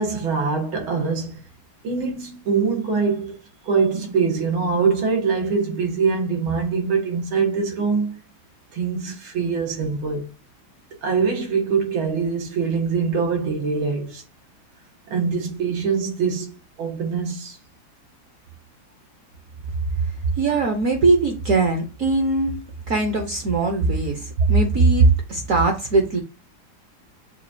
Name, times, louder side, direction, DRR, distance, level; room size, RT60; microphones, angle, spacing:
voice 1, 0.0-1.4 1.8-3.4 3.6-8.2 8.7-10.3 11.0-14.2 15.1-17.6, right 5 dB, 90° right, 2.2 m, -23 dB
voice 2, 20.4-22.6 22.9-26.2, right 3 dB, 55° right, 0.9 m, -20 dB
7.1 x 2.4 x 2.6 m
omnidirectional pair, 2.2 m